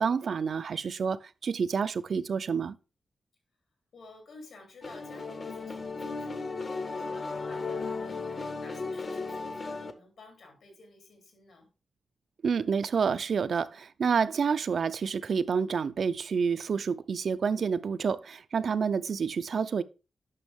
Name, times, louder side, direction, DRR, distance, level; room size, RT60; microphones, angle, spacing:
voice 1, 0.0-2.8 12.4-19.8, right 6 dB, 55° right, 0.5 m, -28 dB
voice 2, 3.9-11.7, left 3 dB, 75° left, 3.4 m, -53 dB
sound 1, 4.8-9.9, left 3 dB, 35° left, 0.8 m, -35 dB
9.0 x 6.2 x 3.6 m
wide cardioid pair, 175°, 0 cm